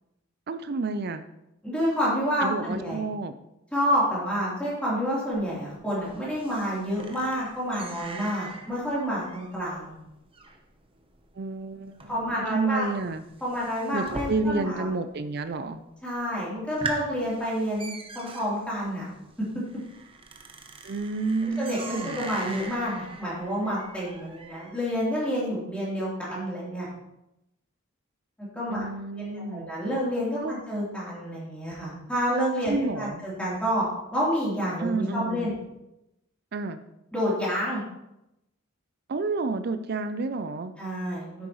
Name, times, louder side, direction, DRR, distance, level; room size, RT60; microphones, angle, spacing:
voice 1, 0.5-1.2 2.4-3.4 11.3-13.2 13.9-15.8 20.8-22.3 28.7-29.7 30.4-30.6 32.7-33.2 34.8-35.5 36.5-36.8 39.1-40.7, right 3 dB, 50° right, 10 dB, 0.5 m, -30 dB
voice 2, 1.6-3.0 3.7-10.0 12.1-12.9 13.4-14.9 16.0-19.1 19.4-19.6 21.4-26.9 28.5-28.9 29.1-33.9 34.1-35.5 37.1-37.8 40.8-41.5, equal, 5° left, -8 dB, 3.5 m, -29 dB
sound 1, 5.3-14.9 15.2-15.8 16.2-16.3 16.6-24.9, right 3 dB, 25° right, 0.9 m, -41 dB
10.0 x 8.3 x 3.1 m, 0.88 s
head